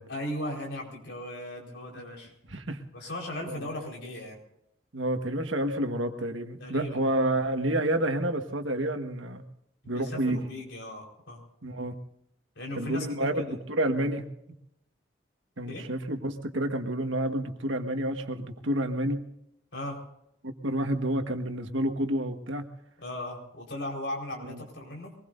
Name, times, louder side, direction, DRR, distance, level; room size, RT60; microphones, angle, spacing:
voice 1, 0.1-2.3 2.9-4.4 6.6-7.3 9.8-11.4 12.6-13.6 15.7-15.8 19.7-20.0 23.0-25.2, left 1 dB, 70° left, 0 dB, 4.6 m, -37 dB
voice 2, 2.5-2.8 3.5-3.7 4.9-9.4 9.9-10.4 11.6-11.9 12.7-14.2 15.6-19.2 20.4-22.7 24.4-24.6, right 1 dB, 85° right, 5 dB, 1.5 m, -29 dB
23.5 x 20.0 x 2.6 m, 0.79 s
head